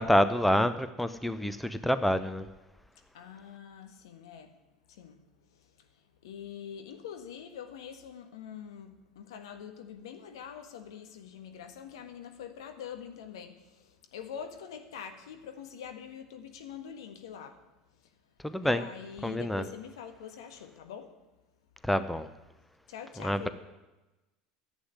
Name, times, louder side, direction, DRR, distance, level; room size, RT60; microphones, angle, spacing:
voice 1, 0.0-2.5 18.4-18.8 19.2-19.6 21.8-22.3 23.2-23.5, equal, 5° left, 12 dB, 0.8 m, -27 dB
voice 2, 3.0-4.6 4.9-17.6 18.0-18.1 18.6-21.1 22.9-23.5, left 8 dB, 70° left, 6 dB, 1.6 m, -45 dB
11.5 x 8.3 x 9.6 m, 1.1 s
figure-of-eight pair, 75°, 3 cm